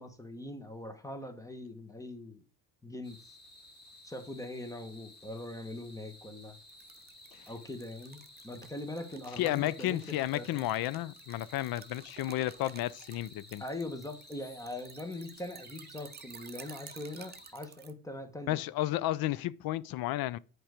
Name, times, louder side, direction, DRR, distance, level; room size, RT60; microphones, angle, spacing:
voice 1, 0.0-2.4 2.8-3.3 4.0-6.6 7.5-10.7 13.6-18.6, left 2 dB, 10° left, 1.2 m, -42 dB
sound 1, 3.0-17.5, left 1 dB, 30° left, 2.8 m, -55 dB
sound 2, 6.7-17.9, right 6 dB, 25° right, 0.8 m, -53 dB
voice 2, 9.4-13.6 18.5-20.4, left 15 dB, 75° left, 0.6 m, -32 dB
8.9 x 4.8 x 5.0 m
cardioid pair, 135°, 36 cm